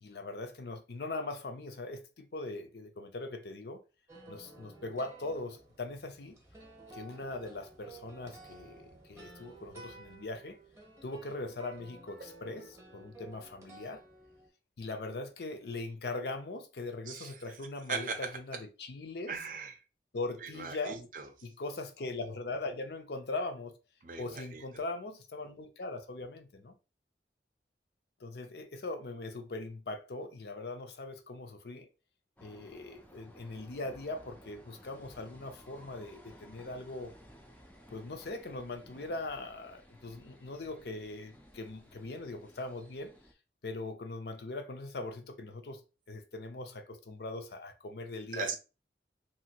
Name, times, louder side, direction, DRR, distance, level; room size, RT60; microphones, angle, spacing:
voice 1, 0.0-3.8 4.3-6.4 6.9-10.6 11.0-14.0 14.8-19.4 20.1-21.0 21.4-23.8 24.2-26.7 28.2-31.9 32.4-37.1 37.9-43.1 43.6-45.8 46.1-48.5, left 2 dB, 65° left, 0.5 m, -40 dB
sound 1, 4.1-14.5, right 3 dB, 15° right, 0.8 m, -53 dB
voice 2, 17.9-18.6 19.3-19.7 20.4-21.2 24.0-24.6 48.3-48.5, right 5 dB, 45° right, 0.5 m, -38 dB
sound 2, 32.4-43.3, equal, 10° left, 0.4 m, -56 dB
3.0 x 2.6 x 2.8 m
head